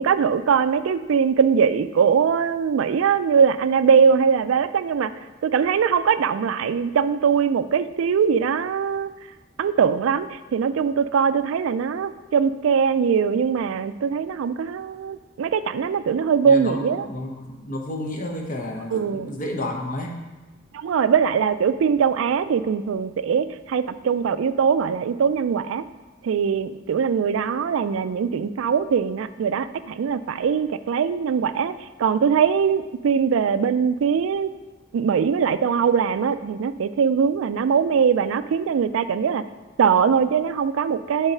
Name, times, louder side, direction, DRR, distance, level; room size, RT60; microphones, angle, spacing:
voice 1, 0.0-5.1 5.4-9.1 9.6-17.1 18.9-19.3 20.7-25.8 26.2-31.7 32.0-34.5 34.9-39.4 39.8-41.3, right 6 dB, 90° right, 13 dB, 0.3 m, -21 dB
voice 2, 16.4-20.2, left 1 dB, 45° left, 2 dB, 0.9 m, -31 dB
7.0 x 4.0 x 5.5 m, 1.2 s
head